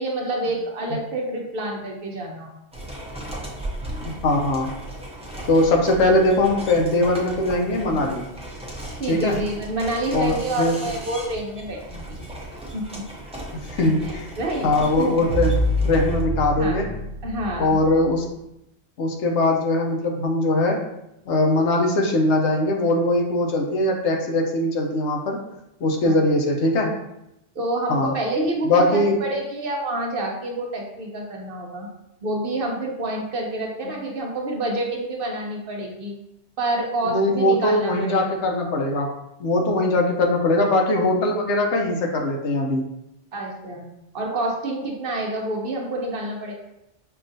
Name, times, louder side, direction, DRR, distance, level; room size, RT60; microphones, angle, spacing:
voice 1, 0.0-2.6 9.0-12.2 12.7-13.0 14.0-15.2 16.6-16.8 17.2-17.8 26.0-26.2 27.5-31.9 32.2-36.1 36.6-38.2 40.6-40.7 43.3-43.8 44.1-46.5, right 1 dB, 55° right, 0 dB, 0.8 m, -28 dB
sound 1, 2.7-16.2, right 1 dB, 5° right, 0.5 m, -36 dB
voice 2, 4.0-4.7 5.5-8.2 9.1-9.3 10.1-10.7 13.7-14.3 14.6-16.9 17.6-18.3 19.0-20.8 21.3-25.4 25.8-26.9 27.9-28.1 28.6-29.2 37.0-39.1 39.4-42.8, left 2 dB, 75° left, 2 dB, 0.9 m, -21 dB
sound 2, 15.3-18.4, equal, 40° left, 0.9 m, -26 dB
5.6 x 2.4 x 2.6 m, 0.85 s
omnidirectional pair, 1.2 m